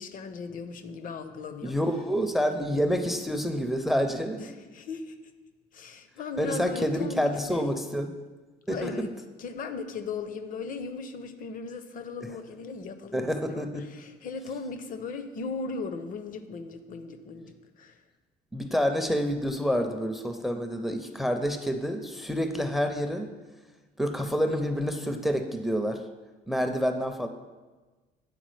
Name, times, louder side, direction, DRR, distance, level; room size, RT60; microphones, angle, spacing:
voice 1, 0.0-1.8 4.4-5.3 5.7-7.7 8.7-18.0, left 4 dB, 50° left, 10 dB, 0.6 m, -38 dB
voice 2, 1.6-4.4 6.4-8.1 8.7-9.1 12.2-12.3 13.1-13.8 18.5-23.3 24.0-26.0 26.5-27.3, equal, ahead, 6 dB, 0.4 m, -28 dB
9.2 x 3.6 x 3.2 m, 1.3 s
cardioid pair, 85°, 18 cm